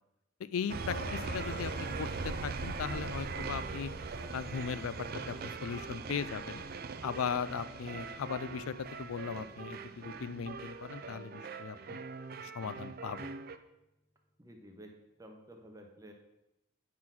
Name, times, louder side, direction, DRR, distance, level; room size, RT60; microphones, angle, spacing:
voice 1, 0.4-1.7 2.0-3.9 4.3-4.9 5.3-6.6 7.0-12.0 12.4-13.3, left 7 dB, 90° left, 15 dB, 0.4 m, -38 dB
sound 1, 0.7-13.6, right 4 dB, 45° right, 0.4 m, -41 dB
sound 2, 0.9-10.6, left 3 dB, 50° left, 0.7 m, -52 dB
voice 2, 14.4-14.9 15.2-16.1, right 1 dB, 15° right, 2 dB, 1.0 m, -52 dB
9.5 x 3.9 x 6.0 m, 0.89 s
head